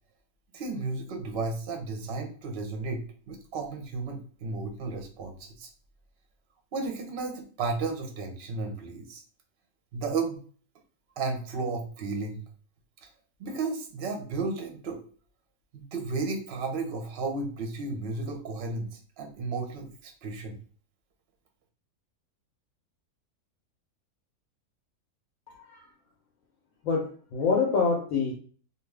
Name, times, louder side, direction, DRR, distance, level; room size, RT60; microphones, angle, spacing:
voice 1, 0.5-5.7 6.7-9.2 9.9-10.4 11.2-12.4 13.0-13.1 13.4-15.0 15.7-20.6, right 3 dB, 50° right, 3 dB, 0.8 m, -33 dB
voice 2, 25.5-25.9 26.8-28.3, left 5 dB, 65° left, -1 dB, 0.9 m, -26 dB
2.6 x 2.6 x 3.3 m, 0.43 s
omnidirectional pair, 1.7 m